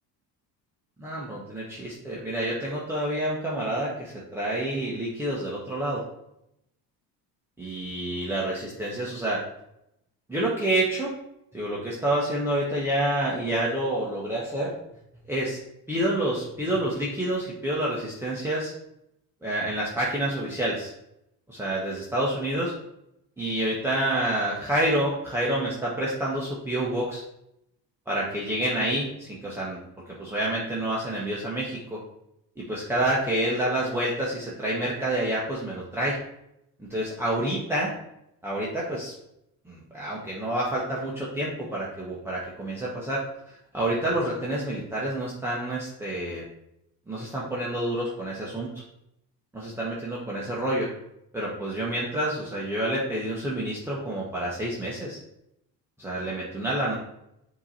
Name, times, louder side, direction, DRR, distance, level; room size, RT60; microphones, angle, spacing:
voice 1, 1.0-6.0 7.6-9.4 10.3-11.2 11.5-14.7 15.3-15.6 15.9-18.7 19.4-20.9 21.5-22.7 23.4-27.2 28.1-29.8 30.2-32.0 32.6-36.2 36.8-37.9 38.4-39.1 39.7-43.2 43.7-46.4 47.1-48.7 49.5-50.9 51.3-55.2 56.0-56.9, right 1 dB, 5° right, -6 dB, 1.0 m, -28 dB
7.6 x 3.0 x 4.2 m, 0.82 s
cardioid pair, 130°, 41 cm